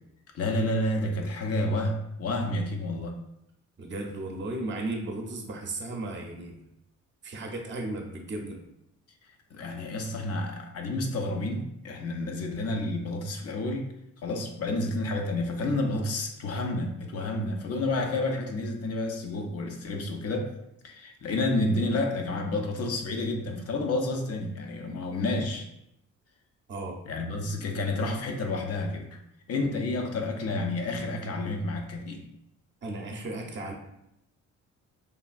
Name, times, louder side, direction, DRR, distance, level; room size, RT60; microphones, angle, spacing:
voice 1, 0.3-3.2 9.5-13.9 14.2-20.5 20.8-25.7 27.1-29.2 29.5-32.2, left 2 dB, 55° left, 3 dB, 0.5 m, -30 dB
voice 2, 3.8-6.7 7.2-8.6 26.7-27.0 32.8-33.7, right 2 dB, 40° right, 2 dB, 0.7 m, -35 dB
3.3 x 2.2 x 2.5 m, 0.81 s
cardioid pair, 90°, 30 cm